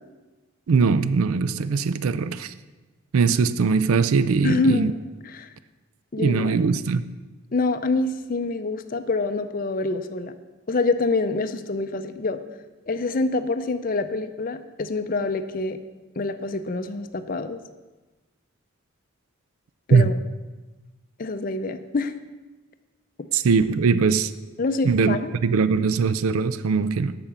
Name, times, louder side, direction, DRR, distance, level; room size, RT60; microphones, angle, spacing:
voice 1, 0.7-2.5 3.1-4.9 6.2-7.1 19.9-20.1 23.3-24.3 24.8-25.2 25.4-27.2, right 5 dB, 85° right, 14 dB, 0.4 m, -21 dB
voice 2, 4.4-4.9 5.2-5.5 6.1-6.6 7.5-10.3 10.7-12.4 12.9-15.8 16.2-17.6 19.9-20.1 21.2-22.1 24.6-25.3, left 3 dB, 40° left, 9 dB, 0.5 m, -26 dB
8.8 x 5.8 x 7.1 m, 1.2 s
head